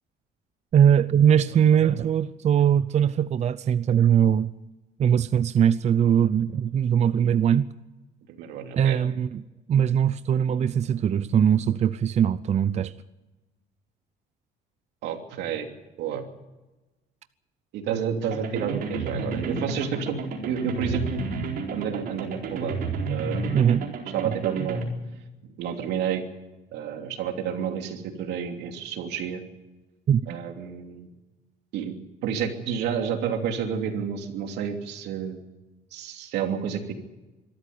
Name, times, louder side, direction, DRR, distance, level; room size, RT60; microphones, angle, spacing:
voice 1, 0.7-4.5 5.0-7.7 8.8-9.4 9.7-12.9 23.5-23.9 30.1-30.4, right 8 dB, 40° right, 0.6 m, -21 dB
voice 2, 8.3-9.0 15.0-15.7 16.0-16.2 17.7-21.2 21.7-22.8 23.1-23.6 24.1-24.8 25.4-26.2 26.7-29.4 30.3-31.1 31.7-31.9 32.2-35.4 35.9-36.9, right 7 dB, 85° right, 2.9 m, -30 dB
sound 1, 18.3-24.8, right 4 dB, 65° right, 4.3 m, -31 dB
24.0 x 13.0 x 9.5 m
cardioid pair, 110°, 17 cm